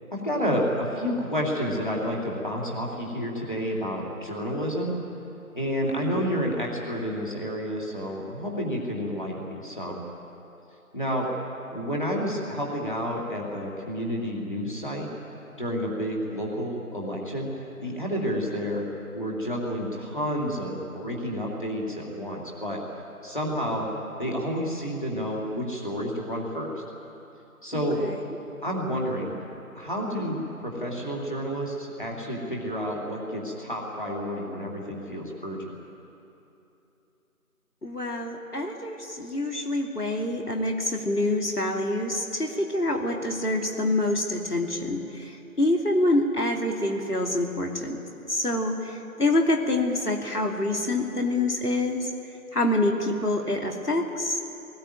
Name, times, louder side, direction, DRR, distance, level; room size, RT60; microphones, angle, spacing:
voice 1, 0.1-4.9 5.5-10.0 10.9-11.3 11.7-15.1 15.6-18.8 19.1-22.8 23.2-23.9 24.2-26.7 27.6-28.0 28.6-29.3 29.7-35.8, equal, 35° left, -2 dB, 2.7 m, -30 dB
voice 2, 5.8-6.3 27.7-28.2 37.8-48.0 48.3-52.1 52.5-54.4, left 1 dB, 90° left, 2 dB, 2.9 m, -26 dB
20.5 x 19.5 x 9.1 m, 2.9 s
figure-of-eight pair, 180°, 45 cm